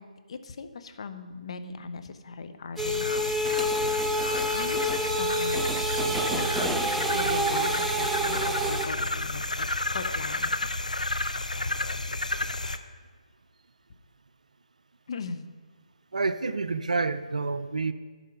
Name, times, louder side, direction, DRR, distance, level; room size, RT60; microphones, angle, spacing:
voice 1, 0.0-3.8 4.5-10.7 15.1-15.4, left 4 dB, 50° left, 8 dB, 0.7 m, -39 dB
sound 1, 2.8-12.8, left 2 dB, 85° left, 0.5 m, -31 dB
sound 2, 2.8-8.9, right 1 dB, 5° right, 0.3 m, -28 dB
voice 2, 16.1-17.9, right 3 dB, 75° right, 13 dB, 0.5 m, -28 dB
11.0 x 4.3 x 5.6 m, 1.5 s
figure-of-eight pair, 145°, 4 cm